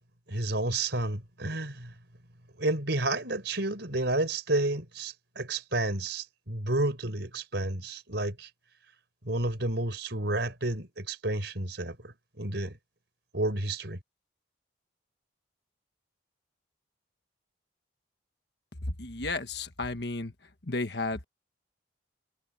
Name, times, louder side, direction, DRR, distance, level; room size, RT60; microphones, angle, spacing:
voice 1, 0.3-1.9 2.6-8.5 9.2-12.8 13.3-14.0, right 2 dB, 65° right, 4.5 m, -31 dB
voice 2, 19.0-20.3 20.7-21.2, left 3 dB, 60° left, 1.5 m, -33 dB
head